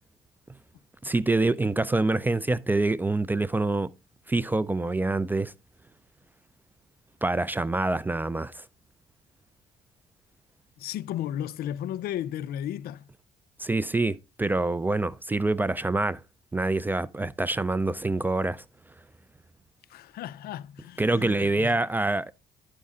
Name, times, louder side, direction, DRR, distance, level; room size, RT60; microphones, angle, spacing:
voice 1, 1.0-3.9 4.3-5.5 7.2-8.7 13.6-16.2 16.5-18.6 21.0-22.3, right 2 dB, 10° right, 0.3 m, -26 dB
voice 2, 10.8-13.1 19.9-21.7, left 11 dB, 65° left, 0.5 m, -34 dB
11.5 x 5.4 x 3.6 m
cardioid pair, 110°, 17 cm